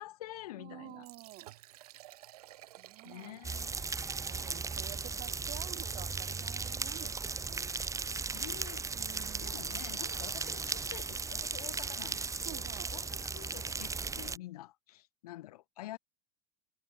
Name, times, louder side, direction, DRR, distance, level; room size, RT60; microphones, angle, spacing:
voice 1, 0.0-1.1 3.0-3.8 8.3-8.9 9.4-16.0, left 15 dB, 75° left, 2.9 m, -48 dB
voice 2, 0.6-1.5 2.8-3.4 4.3-7.7 8.9-9.8 12.4-13.0, right 21 dB, 50° right, 5.6 m, -50 dB
Liquid, 0.9-7.8, right 15 dB, 75° right, 2.9 m, -56 dB
sound 1, 3.4-14.4, right 4 dB, 15° right, 2.1 m, -37 dB
hypercardioid pair, 95°, 20 cm